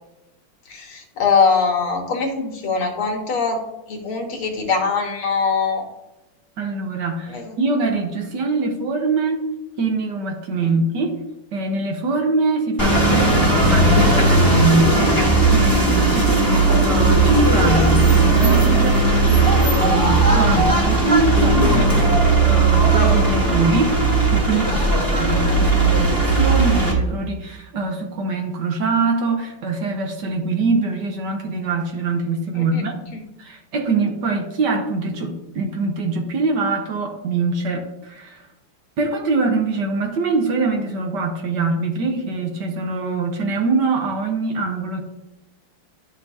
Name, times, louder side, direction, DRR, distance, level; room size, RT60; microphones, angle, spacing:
voice 1, 0.7-3.6 3.9-5.9 7.3-7.6 10.6-10.8 32.5-32.8 33.1-33.2, left 5 dB, 80° left, 2 dB, 2.1 m, -22 dB
voice 2, 6.6-9.5 9.8-11.2 11.5-24.0 24.3-32.9 33.4-38.5 39.0-45.0, right 3 dB, 60° right, 4 dB, 1.4 m, -23 dB
sound 1, 12.8-26.9, right 2 dB, 10° right, 1.8 m, -16 dB
11.0 x 5.8 x 2.7 m, 0.98 s
omnidirectional pair, 2.3 m